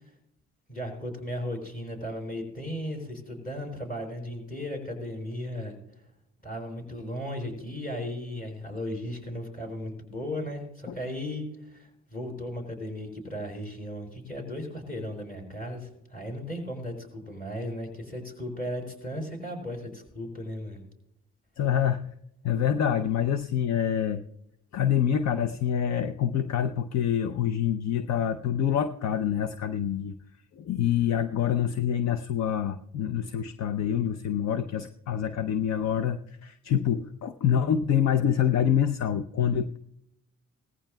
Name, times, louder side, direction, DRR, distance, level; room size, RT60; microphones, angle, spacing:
voice 1, 0.7-5.8 6.4-20.8, left 1 dB, 30° left, 1 dB, 5.0 m, -36 dB
voice 2, 21.6-22.1 22.4-24.2 24.7-30.1 30.6-39.8, left 9 dB, 60° left, 10 dB, 0.6 m, -26 dB
18.5 x 14.5 x 2.3 m, 0.77 s
cardioid pair, 90°, 30 cm